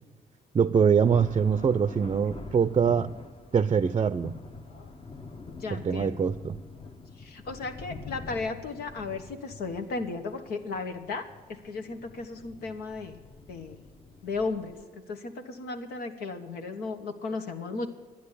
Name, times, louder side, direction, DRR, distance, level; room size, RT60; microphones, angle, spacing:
voice 1, 0.5-3.1 3.5-4.3 5.7-6.6, right 6 dB, 35° right, 13 dB, 0.5 m, -23 dB
Thunder, 0.9-14.8, left 3 dB, 35° left, 1.1 m, -45 dB
voice 2, 5.5-6.2 7.2-13.2 13.5-13.8 14.2-17.9, left 3 dB, 80° left, 5 dB, 1.5 m, -35 dB
11.0 x 9.4 x 8.4 m, 1.4 s
supercardioid pair, 70°, 16 cm